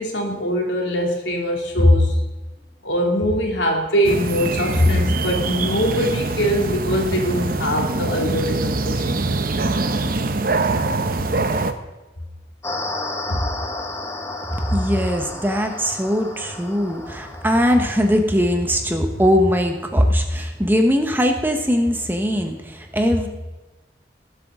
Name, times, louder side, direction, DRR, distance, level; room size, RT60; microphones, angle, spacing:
voice 1, 0.0-2.2 2.8-9.4 13.3-13.5 13.8-13.9, equal, 85° left, 1 dB, 2.9 m, -21 dB
sound 1, 4.0-11.7, right 3 dB, 50° right, 0.8 m, -23 dB
sound 2, 12.6-18.2, left 2 dB, 15° left, 1.1 m, -32 dB
voice 2, 14.6-23.3, equal, 10° right, 4 dB, 1.2 m, -20 dB
19.0 x 8.1 x 3.8 m, 1.1 s
head